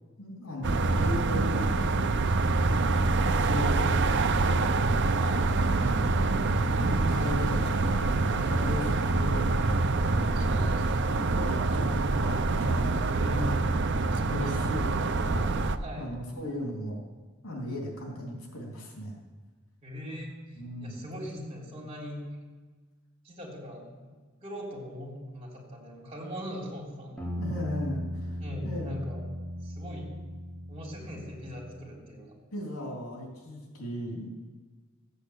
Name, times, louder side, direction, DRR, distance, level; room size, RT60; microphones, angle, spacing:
voice 1, 0.2-2.4 3.0-4.6 5.8-7.8 8.4-10.7 11.1-13.1 13.4-13.5 14.3-17.0 17.4-19.2 20.6-21.1 27.4-29.0 32.5-34.3, left 1 dB, 85° left, 0 dB, 3.3 m, -37 dB
sound 1, 0.6-15.8, right 3 dB, 55° right, 0.6 m, -26 dB
sound 2, 6.8-13.1, equal, 25° left, 2.3 m, -50 dB
voice 2, 10.3-11.1 13.1-13.8 14.1-14.8 15.8-16.2 19.8-20.3 20.8-22.2 23.2-24.1 24.4-27.3 28.4-29.2 29.6-30.1 30.7-32.3, equal, 30° right, -2 dB, 3.6 m, -40 dB
sound 3, 27.2-31.8, equal, 5° left, 4.3 m, -37 dB
15.5 x 8.3 x 8.2 m, 1.4 s
head